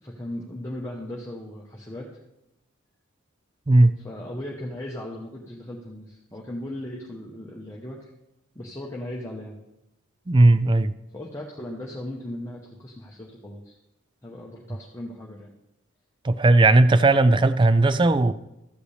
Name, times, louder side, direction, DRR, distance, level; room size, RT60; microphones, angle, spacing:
voice 1, 0.0-2.1 4.0-8.1 8.5-9.6 11.1-13.8 14.2-15.5, left 1 dB, 15° left, -3 dB, 0.9 m, -37 dB
voice 2, 10.3-10.9 16.2-18.3, right 2 dB, 20° right, 14 dB, 0.3 m, -17 dB
13.5 x 8.0 x 3.3 m, 0.90 s
head